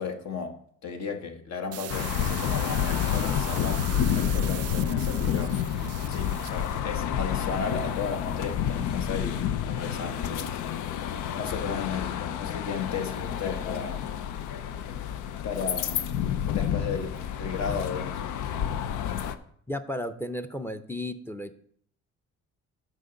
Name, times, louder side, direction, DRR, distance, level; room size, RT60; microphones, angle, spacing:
voice 1, 0.0-3.8 4.2-5.6 6.1-10.6 11.3-14.0 15.4-16.3 16.5-18.1, left 5 dB, 60° left, 5 dB, 1.3 m, -34 dB
sound 1, 1.7-6.8, right 13 dB, 55° right, 0.4 m, -40 dB
sound 2, 1.9-19.4, left 9 dB, 80° left, 0.6 m, -29 dB
voice 2, 19.7-21.6, left 1 dB, 10° left, 9 dB, 0.6 m, -34 dB
6.2 x 5.1 x 6.8 m, 0.64 s
cardioid pair, 90°, 30 cm